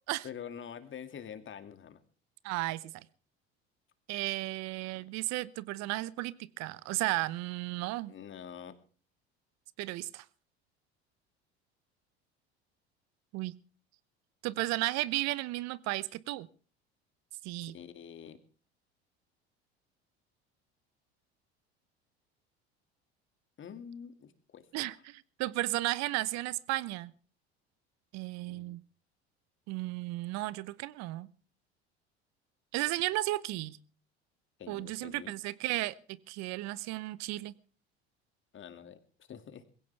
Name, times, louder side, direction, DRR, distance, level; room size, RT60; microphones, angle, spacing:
voice 1, 0.2-2.0 4.9-5.0 8.1-8.7 17.6-18.4 23.6-24.7 28.5-28.8 34.6-35.3 38.5-39.6, left 8 dB, 35° left, 2.4 m, -46 dB
voice 2, 2.4-3.0 4.1-8.1 9.8-10.2 13.3-13.5 14.4-16.5 17.4-17.7 24.7-27.1 28.1-28.8 29.7-31.3 32.7-33.8 34.7-36.0 36.3-37.5, right 19 dB, 55° right, 1.0 m, -34 dB
21.5 x 17.0 x 3.4 m
figure-of-eight pair, 70°, 33 cm